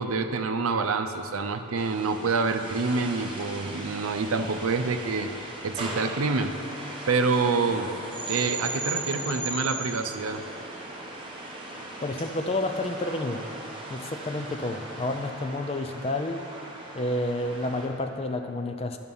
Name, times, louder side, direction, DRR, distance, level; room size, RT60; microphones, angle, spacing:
voice 1, 0.0-5.3 5.6-6.5 7.1-7.9 8.3-10.5, right 4 dB, 90° right, 8 dB, 0.6 m, -27 dB
sound 1, 1.8-17.9, right 2 dB, 25° right, 1.0 m, -38 dB
voice 2, 12.0-13.5 13.9-16.4 16.9-19.0, left 2 dB, 30° left, 6 dB, 0.4 m, -30 dB
11.0 x 5.8 x 5.5 m, 2.8 s
head